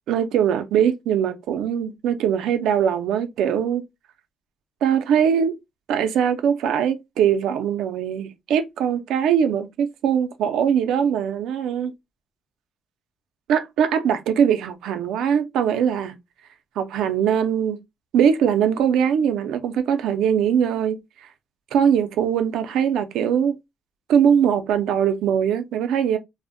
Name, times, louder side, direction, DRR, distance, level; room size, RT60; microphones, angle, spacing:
voice 1, 0.1-3.8 4.8-5.5 5.9-11.9 13.5-16.2 16.8-17.8 18.1-21.3 21.7-23.5 24.1-26.2, right 8 dB, 85° right, 0.4 m, -21 dB
2.5 x 2.0 x 2.5 m
cardioid pair, 90°, 0 cm